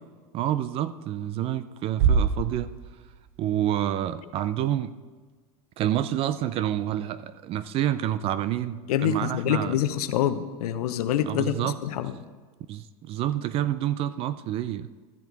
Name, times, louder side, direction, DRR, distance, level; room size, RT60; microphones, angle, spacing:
voice 1, 0.3-2.7 3.4-4.9 5.8-9.7 11.3-11.8 12.7-14.9, right 12 dB, 30° right, 14 dB, 0.3 m, -28 dB
Bass drum, 2.0-3.7, right 6 dB, 45° right, 0.8 m, -25 dB
voice 2, 8.9-12.1, left 10 dB, 85° left, 10 dB, 0.7 m, -26 dB
13.5 x 7.2 x 3.9 m, 1.4 s
supercardioid pair, 140°, 19 cm